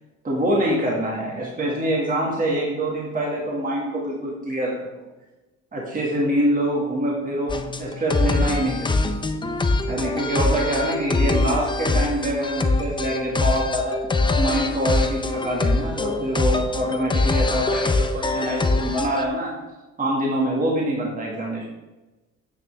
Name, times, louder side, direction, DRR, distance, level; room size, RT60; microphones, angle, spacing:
voice 1, 0.2-5.0 5.7-9.1 9.9-14.0 14.4-19.5 20.0-21.7, right 1 dB, 30° right, -3 dB, 1.9 m, -25 dB
sound 1, 7.5-19.2, left 2 dB, 15° left, 0.6 m, -23 dB
9.0 x 6.1 x 3.4 m, 1.1 s
cardioid pair, 90°, 30 cm